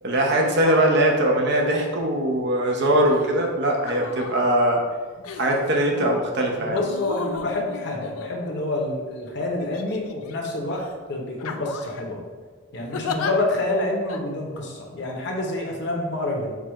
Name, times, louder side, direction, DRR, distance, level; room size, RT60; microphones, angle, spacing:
voice 1, 0.0-4.8 5.4-6.8, right 1 dB, 50° right, 0 dB, 0.7 m, -21 dB
sound 1, 3.1-3.3 3.8-4.4 5.2-5.8 6.8-8.8 9.6-10.3 10.7-10.9 11.4-12.0 12.9-13.3 14.1-14.2, left 6 dB, 85° left, 0.4 m, -34 dB
voice 2, 6.7-10.8 11.1-12.2 12.7-16.6, left 2 dB, 55° left, 0 dB, 0.8 m, -27 dB
4.7 x 2.4 x 4.7 m, 1.5 s
head